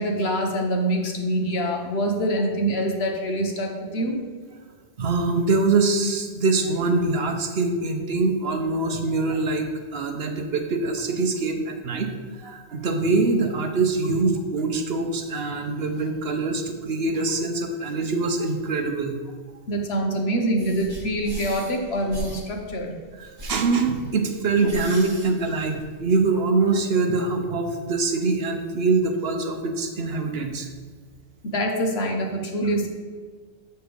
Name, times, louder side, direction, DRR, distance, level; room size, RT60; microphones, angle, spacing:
voice 1, 0.0-4.2 19.7-23.0 31.4-32.9, right 1 dB, 60° left, 2 dB, 1.2 m, -25 dB
voice 2, 5.0-19.2 23.2-30.7 32.6-32.7, right 3 dB, 60° right, 5 dB, 1.0 m, -24 dB
sound 1, 20.6-26.2, equal, 20° right, 1.6 m, -39 dB
7.8 x 6.7 x 3.4 m, 1.5 s
omnidirectional pair, 1.2 m